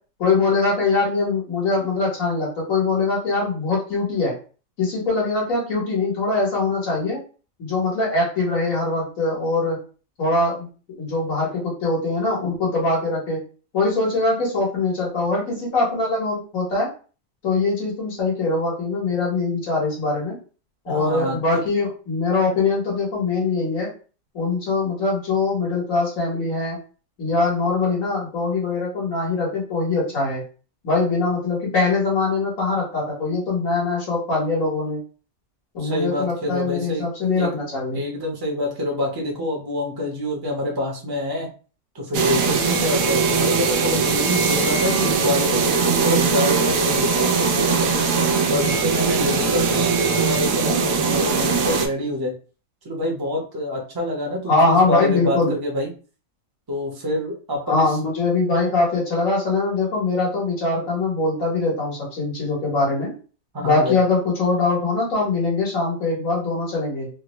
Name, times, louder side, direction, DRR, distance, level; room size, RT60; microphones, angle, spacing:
voice 1, 0.2-4.3 4.8-7.2 7.6-9.8 10.2-10.7 11.0-13.4 13.7-16.9 17.4-20.4 20.9-23.9 24.3-26.8 27.2-30.4 30.8-35.0 35.7-38.0 54.5-55.5 57.7-63.1 63.6-67.1, left 3 dB, 75° left, -5 dB, 1.7 m, -22 dB
voice 2, 20.9-21.6 35.8-37.6 37.9-41.5 41.9-48.1 48.5-52.3 52.8-55.9 56.7-58.0 63.5-64.0, left 1 dB, 20° right, -1 dB, 0.7 m, -27 dB
sound 1, 42.1-51.9, right 5 dB, 85° right, 1.1 m, -20 dB
3.4 x 2.1 x 3.0 m, 0.37 s
omnidirectional pair, 1.4 m